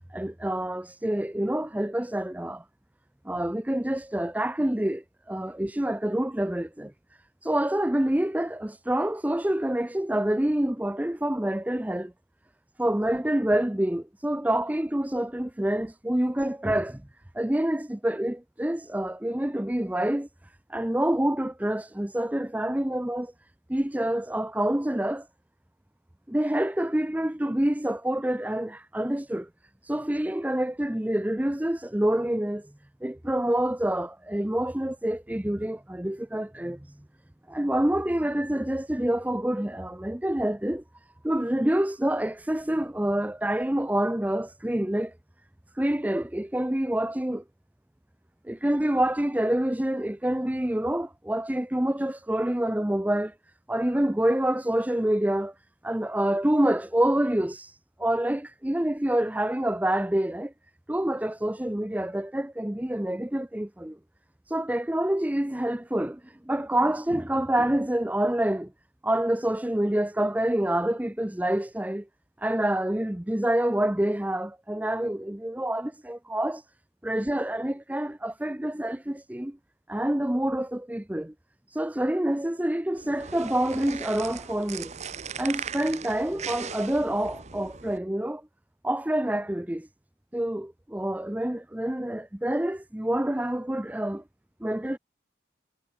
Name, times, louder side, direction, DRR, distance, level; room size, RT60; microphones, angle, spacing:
voice 1, 0.0-2.6 3.2-6.9 7.4-12.1 12.8-17.0 17.3-20.3 20.7-23.3 23.7-25.3 26.3-29.5 29.8-32.7 33.0-37.0 37.5-40.8 41.2-45.1 45.8-47.4 48.4-53.3 53.7-55.5 55.8-60.5 60.9-64.0 64.5-68.7 69.0-72.1 72.4-76.6 77.0-79.6 79.9-81.3 81.7-85.0 85.4-88.4 88.8-89.9 90.3-94.2 94.6-95.0, right 1 dB, 10° right, 0.5 m, -27 dB
sound 1, 83.0-88.0, right 6 dB, 40° right, 1.1 m, -38 dB
head